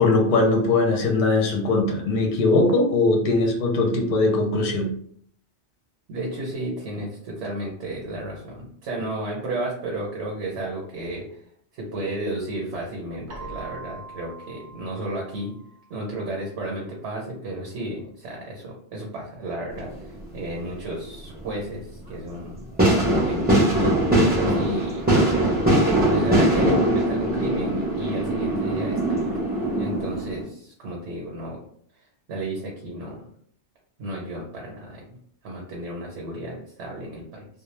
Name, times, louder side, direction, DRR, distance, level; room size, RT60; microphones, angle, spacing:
voice 1, 0.0-4.9, left 3 dB, 60° left, 2 dB, 0.7 m, -20 dB
voice 2, 6.1-11.4 11.7-15.5 15.9-25.0 25.8-29.4 29.8-31.6 32.3-33.2 34.0-35.2 35.4-37.5, right 1 dB, 80° right, -2 dB, 1.0 m, -33 dB
Keyboard (musical), 13.3-16.0, right 3 dB, 55° right, 0.6 m, -42 dB
sound 1, 19.7-20.3 20.7-21.5 22.0-22.1 22.8-30.4, right 1 dB, 10° right, 0.6 m, -21 dB
2.2 x 2.1 x 3.1 m, 0.62 s
omnidirectional pair, 1.2 m